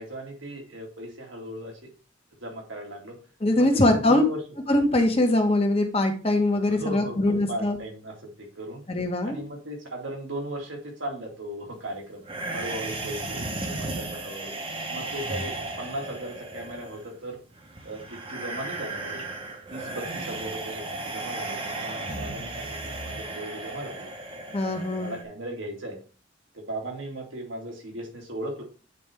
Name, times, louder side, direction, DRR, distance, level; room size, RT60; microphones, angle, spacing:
voice 1, 0.0-1.9 2.4-3.2 3.5-4.4 6.6-8.8 9.2-12.2 12.5-14.5 14.9-17.4 17.8-19.2 19.7-24.1 24.6-26.0 26.5-28.6, right 1 dB, 85° right, 1 dB, 2.3 m, -37 dB
voice 2, 3.4-4.2 4.7-7.8 8.9-9.5 24.5-25.2, left 1 dB, 30° left, 4 dB, 1.2 m, -22 dB
sound 1, 12.2-25.2, right 2 dB, 30° right, 1.0 m, -35 dB
9.2 x 4.3 x 3.5 m, 0.36 s
head